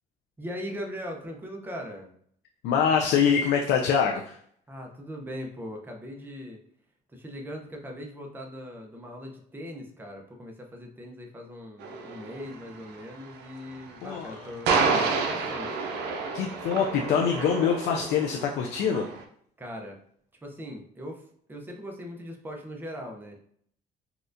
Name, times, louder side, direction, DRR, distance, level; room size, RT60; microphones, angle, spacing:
voice 1, 0.4-2.1 4.7-6.6 7.1-15.9 19.6-20.0 20.4-23.4, equal, 10° right, 1 dB, 0.6 m, -40 dB
voice 2, 2.6-4.4 14.0-14.4 16.3-19.1, left 7 dB, 80° left, 2 dB, 0.4 m, -24 dB
sound 1, 11.8-19.2, right 4 dB, 90° right, 0.5 m, -30 dB
4.2 x 2.4 x 2.5 m, 0.65 s
cardioid pair, 110°, 17 cm